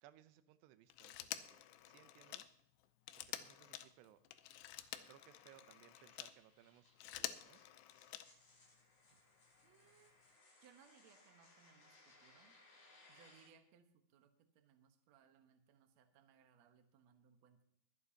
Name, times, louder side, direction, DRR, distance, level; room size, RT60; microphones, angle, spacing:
voice 1, 0.0-1.6 1.9-2.5 3.3-4.2 5.1-7.6 9.1-9.2, right 13 dB, 90° right, 12 dB, 2.9 m, -65 dB
Telephone, 0.9-6.4 6.8-8.6 9.8-9.9, left 13 dB, 90° left, 2.9 m, -49 dB
sound 1, 2.8-13.5, left 2 dB, 55° left, 6.8 m, -68 dB
voice 2, 9.6-10.1 10.6-12.5 13.1-17.6, right 7 dB, 70° right, 6 dB, 1.7 m, -68 dB
22.5 x 11.0 x 2.8 m, 0.72 s
omnidirectional pair, 4.8 m